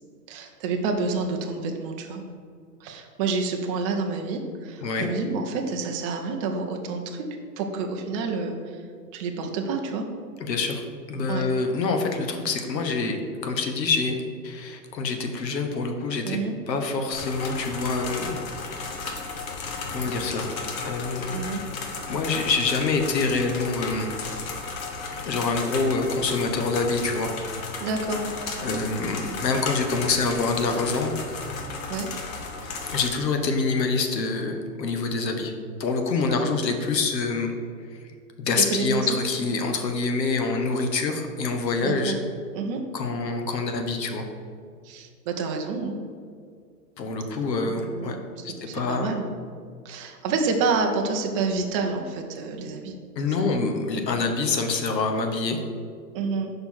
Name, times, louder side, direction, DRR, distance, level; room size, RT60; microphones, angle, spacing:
voice 1, 0.3-2.2 2.8-8.8 9.1-10.1 11.3-11.5 16.2-16.6 21.3-21.6 27.8-28.2 31.9-32.1 36.3-36.7 38.6-39.2 41.8-42.2 42.5-42.8 44.8-46.0 47.6-49.3 49.8-52.9 53.4-53.5 54.1-54.2 56.1-56.5, right 4 dB, 20° right, 3 dB, 0.4 m, -29 dB
voice 2, 10.4-10.8 11.1-14.1 14.4-16.4 16.7-18.4 19.9-20.5 20.8-21.5 22.1-24.1 25.1-27.3 28.6-31.1 32.6-35.5 35.8-37.5 38.4-42.2 42.9-44.3 47.0-48.2 48.4-49.1 53.2-55.6, left 4 dB, 80° left, 5 dB, 1.2 m, -26 dB
sound 1, 17.1-33.1, left 4 dB, 55° left, 1.3 m, -34 dB
5.4 x 4.3 x 6.1 m, 2.1 s
hypercardioid pair, 120°, 49 cm